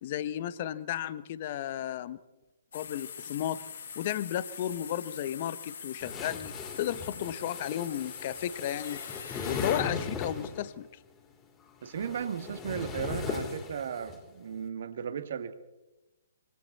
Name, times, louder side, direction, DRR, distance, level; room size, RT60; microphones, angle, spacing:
voice 1, 0.0-2.2 2.7-3.6 4.0-9.0 9.4-10.9, left 11 dB, 40° left, 16 dB, 1.1 m, -34 dB
sound 1, 2.7-9.8, left 7 dB, 60° left, 5.9 m, -43 dB
sound 2, 6.0-10.7 11.7-14.2, left 5 dB, 20° left, 4.0 m, -38 dB
voice 2, 11.8-15.5, right 7 dB, 55° right, 9 dB, 2.3 m, -35 dB
26.5 x 26.0 x 4.2 m, 1.0 s
figure-of-eight pair, 130°, 0 cm